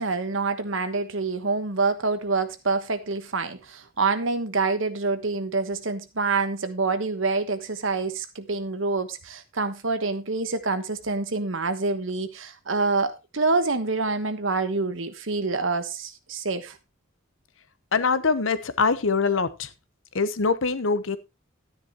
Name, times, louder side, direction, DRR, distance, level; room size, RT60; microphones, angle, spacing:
voice 1, 0.0-16.8, right 3 dB, 70° right, 1.2 m, -26 dB
voice 2, 17.9-19.7 20.1-21.2, left 4 dB, 70° left, 0.9 m, -23 dB
12.5 x 9.8 x 3.0 m
head